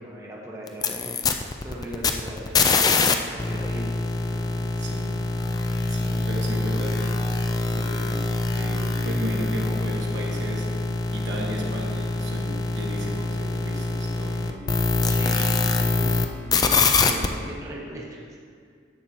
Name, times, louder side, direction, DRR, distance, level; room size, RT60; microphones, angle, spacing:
voice 1, 0.0-3.2 3.4-4.7 5.9-6.7 15.1-15.6 16.0-18.4, right 1 dB, 15° right, -4 dB, 0.9 m, -39 dB
sound 1, 0.7-3.1 3.4-16.3 16.5-17.3, left 3 dB, 20° left, 0.3 m, -24 dB
voice 2, 4.8-5.3 5.9-7.4 7.7-10.8 11.1-14.8, equal, 65° right, -1 dB, 1.2 m, -35 dB
11.0 x 7.6 x 2.9 m, 2.1 s
head